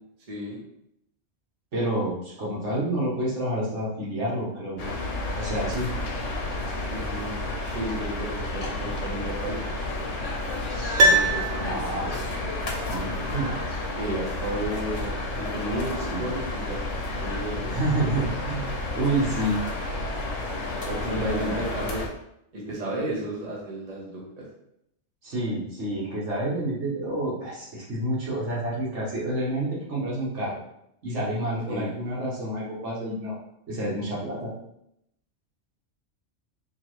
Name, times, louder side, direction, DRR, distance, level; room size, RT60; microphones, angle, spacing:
voice 1, 0.3-0.6 6.9-9.6 11.1-11.8 12.0-12.3 14.0-16.8 17.2-17.7 20.8-22.1 22.5-24.4 31.7-31.9, right 1 dB, 35° right, -4 dB, 0.9 m, -33 dB
voice 2, 1.7-4.9 5.4-5.9 10.7-11.2 11.6-12.2 12.8-13.8 16.1-16.2 17.7-18.7 18.9-19.6 21.1-21.6 25.2-30.6 31.0-33.4 33.7-34.5, right 1 dB, 70° right, -5 dB, 1.5 m, -29 dB
sound 1, 4.8-22.1, left 2 dB, 75° left, 1.1 m, -31 dB
Piano, 11.0-12.2 12.5-12.6, right 1 dB, 85° right, 1.0 m, -22 dB
4.1 x 2.9 x 3.1 m, 0.78 s
omnidirectional pair, 1.3 m